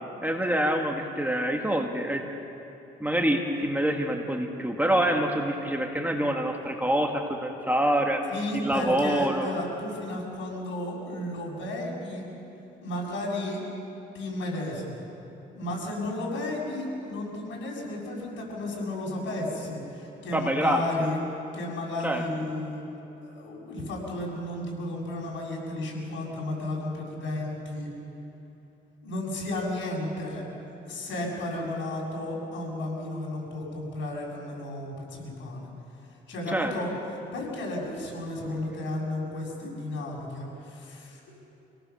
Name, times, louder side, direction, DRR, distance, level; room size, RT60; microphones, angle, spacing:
voice 1, 0.2-2.3 3.0-8.2 8.5-9.5 20.3-20.8 22.0-22.2 36.5-36.7, right 1 dB, 10° right, 2 dB, 2.0 m, -26 dB
voice 2, 8.3-12.3 12.8-13.6 14.1-15.0 15.5-21.2 21.5-22.8 23.2-27.9 29.0-30.4 30.8-35.7 36.3-36.9 37.3-41.4, left 1 dB, 75° left, -2 dB, 6.8 m, -33 dB
26.5 x 18.0 x 7.1 m, 2.9 s
cardioid pair, 90°, 20 cm